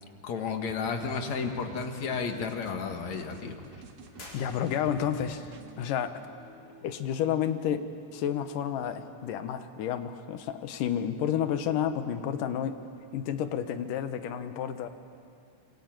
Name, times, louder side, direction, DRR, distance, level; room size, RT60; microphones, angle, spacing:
voice 1, 0.2-3.6, left 5 dB, 60° left, 5 dB, 2.8 m, -32 dB
sound 1, 0.7-5.8, right 5 dB, 90° right, 3.3 m, -50 dB
sound 2, 4.0-9.1, left 1 dB, 25° left, 6.6 m, -54 dB
sound 3, 4.1-5.2, left 1 dB, 40° left, 5.2 m, -49 dB
voice 2, 4.3-5.5 5.8-6.2 6.8-7.9 8.1-12.8 13.1-14.9, left 9 dB, 80° left, 9 dB, 2.7 m, -30 dB
27.0 x 24.5 x 9.1 m, 2.4 s
omnidirectional pair, 3.8 m